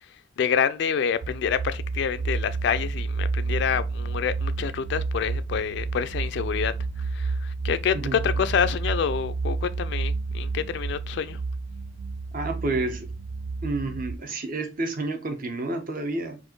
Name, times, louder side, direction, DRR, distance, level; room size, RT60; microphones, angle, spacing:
voice 1, 0.4-11.4, left 7 dB, 60° left, 0.3 m, -27 dB
sound 1, 1.2-14.2, right 3 dB, 85° right, 0.4 m, -30 dB
voice 2, 12.3-13.1 13.6-16.4, right 2 dB, 45° right, 0.9 m, -29 dB
4.2 x 2.6 x 4.5 m
head